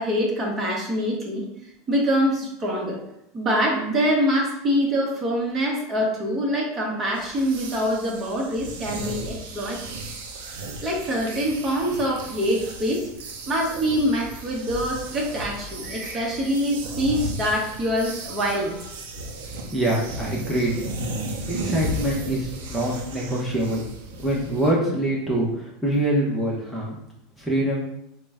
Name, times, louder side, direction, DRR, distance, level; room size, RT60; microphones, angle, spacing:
voice 1, 0.0-1.4 1.9-3.0 3.3-9.9 10.8-13.1 13.5-18.9 19.1-19.2, equal, 30° right, -1 dB, 1.0 m, -25 dB
sound 1, 7.2-24.7, right 1 dB, 80° right, 0.6 m, -35 dB
voice 2, 19.7-20.9 21.5-23.8 24.2-26.9 27.4-27.8, right 1 dB, 5° left, -5 dB, 0.8 m, -24 dB
3.9 x 2.2 x 3.5 m, 0.78 s
supercardioid pair, 120°, 0 cm